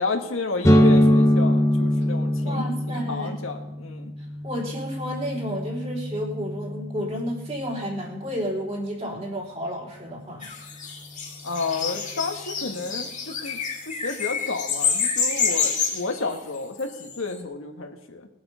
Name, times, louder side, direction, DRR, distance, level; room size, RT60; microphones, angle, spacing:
voice 1, 0.0-4.1 11.4-13.6 13.9-18.3, left 3 dB, 75° left, 4 dB, 1.6 m, -31 dB
sound 1, 0.6-8.2, equal, 15° left, 0.8 m, -23 dB
voice 2, 2.4-3.3 4.4-10.5, equal, 30° right, -2 dB, 3.5 m, -31 dB
sound 2, 10.4-17.2, left 6 dB, 35° left, 2.4 m, -28 dB
20.0 x 7.8 x 5.6 m, 1.0 s
head